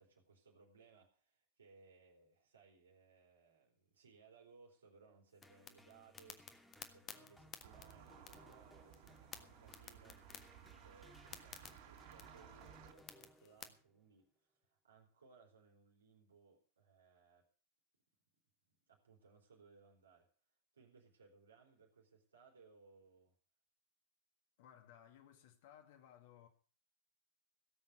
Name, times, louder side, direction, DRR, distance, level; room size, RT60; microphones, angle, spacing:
voice 1, 0.0-6.4 6.8-17.5 18.9-20.3 20.7-23.4, right 5 dB, 70° right, 3.5 m, -66 dB
sound 1, 5.3-13.7, left 9 dB, 30° left, 1.4 m, -56 dB
sound 2, 5.4-13.9, left 1 dB, 5° left, 2.0 m, -65 dB
sound 3, 7.6-12.9, right 9 dB, 50° right, 3.8 m, -59 dB
voice 2, 24.6-26.5, left 10 dB, 55° left, 2.1 m, -61 dB
17.0 x 8.1 x 6.4 m
figure-of-eight pair, 90°, 0 cm